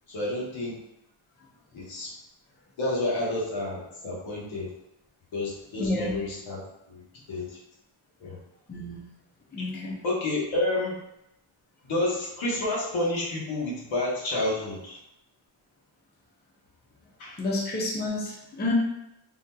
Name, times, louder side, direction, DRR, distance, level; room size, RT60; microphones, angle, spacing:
voice 1, 0.1-0.8 1.7-2.1 2.8-4.7 5.3-6.6 6.9-7.0 7.3-7.5 8.2-8.4 9.6-9.7 10.0-11.0 11.8-15.0 17.2-17.4, left 2 dB, 80° left, -5 dB, 1.2 m, -29 dB
voice 2, 5.8-6.2 8.7-9.0 9.5-10.0 17.4-18.7, left 2 dB, 20° left, -4 dB, 0.5 m, -30 dB
3.7 x 2.9 x 2.2 m, 0.83 s
wide cardioid pair, 170°, 47 cm